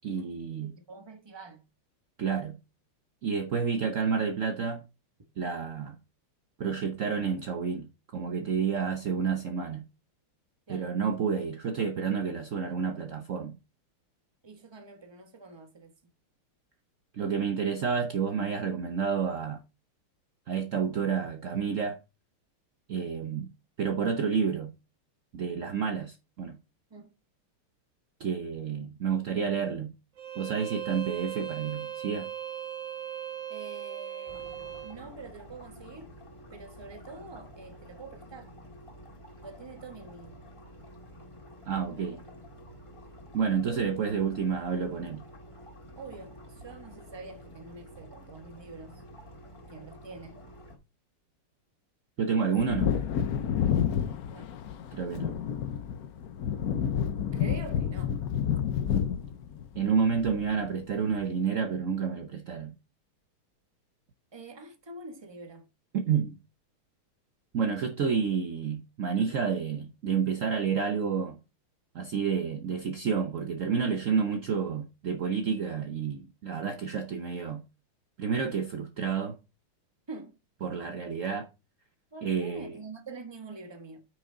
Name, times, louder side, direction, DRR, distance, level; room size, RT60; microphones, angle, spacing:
voice 1, 0.0-0.7 2.2-2.6 3.2-4.8 5.4-6.0 6.6-9.8 10.7-13.6 17.1-19.6 20.5-22.0 22.9-23.5 23.8-24.7 25.3-26.6 28.2-29.9 30.4-32.3 41.7-42.2 43.3-45.2 52.2-53.0 54.9-55.4 59.7-62.7 65.9-66.4 67.5-71.4 71.9-77.6 78.2-79.4 80.6-81.5 82.2-82.7, right 6 dB, 70° right, 0.7 m, -29 dB
voice 2, 0.6-1.6 10.7-10.9 14.4-15.9 26.9-27.1 33.5-34.5 34.8-36.1 36.5-38.5 39.4-40.4 43.6-43.9 45.9-49.0 49.6-50.4 54.3-54.5 57.3-58.2 64.3-65.7 80.1-80.4 82.1-84.1, right 3 dB, 15° right, 0.9 m, -45 dB
Bowed string instrument, 30.2-35.0, right 10 dB, 40° right, 1.2 m, -38 dB
sound 1, 34.3-50.8, equal, 15° left, 1.9 m, -49 dB
Wind / Thunder, 52.6-60.8 61.1-61.2, left 9 dB, 65° left, 0.9 m, -30 dB
9.3 x 6.2 x 3.8 m
omnidirectional pair, 2.4 m